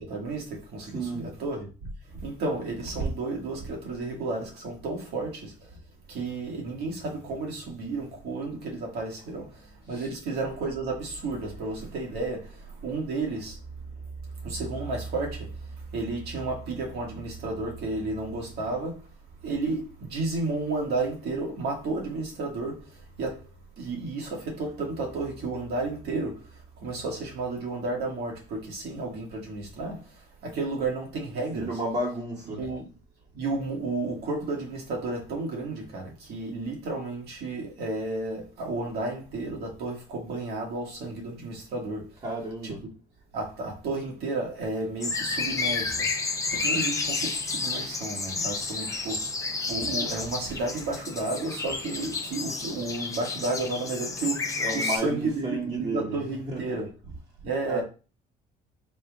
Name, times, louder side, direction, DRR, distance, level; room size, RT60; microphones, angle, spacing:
voice 1, 0.1-1.7 2.2-5.5 6.1-9.5 9.9-12.4 12.8-13.6 14.4-15.5 15.9-19.0 19.4-19.8 20.1-22.8 23.2-23.4 23.8-26.4 26.8-30.0 30.4-31.7 32.6-32.8 33.3-42.0 42.6-42.7 43.3-46.1 46.5-49.2 49.7-56.9 57.4-57.8, right 3 dB, 70° right, 2.1 m, -32 dB
voice 2, 0.9-1.2 9.9-10.1 31.5-32.6 42.2-42.8 54.6-56.2 56.4-56.8 57.7-57.8, right 2 dB, 40° right, 1.5 m, -32 dB
sound 1, 45.0-55.0, left 4 dB, 20° left, 0.7 m, -31 dB
4.1 x 2.6 x 4.8 m
cardioid pair, 110°, 17 cm